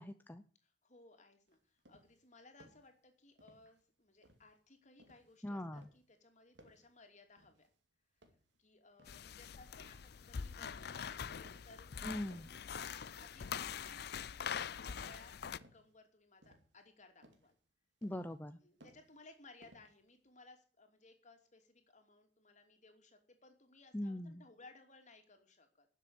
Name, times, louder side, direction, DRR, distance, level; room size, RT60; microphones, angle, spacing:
voice 1, 0.0-0.4 5.4-5.9 12.0-12.5 18.0-18.6 23.9-24.4, left 1 dB, 10° left, 9 dB, 0.6 m, -41 dB
voice 2, 0.6-7.7 8.6-11.9 12.4-17.6 18.6-25.9, left 3 dB, 40° left, 5 dB, 2.9 m, -62 dB
sound 1, 1.5-2.2 2.6-2.9 3.4-3.8 4.2-5.4 5.8-6.1 6.5-7.0 7.4-7.8 8.2-9.3 9.8-10.2 10.6-10.9 11.4-11.9 12.1-12.7 13.2-13.6 14.0-14.4 14.8-15.2 15.6-16.0 16.4-17.0 17.2-17.5 18.0-18.5 18.8-19.3 19.6-20.3, right 1 dB, 80° right, 2.7 m, -65 dB
sound 2, 9.1-15.6, left 7 dB, 60° left, 0.5 m, -44 dB
12.0 x 7.5 x 9.7 m, 0.42 s
head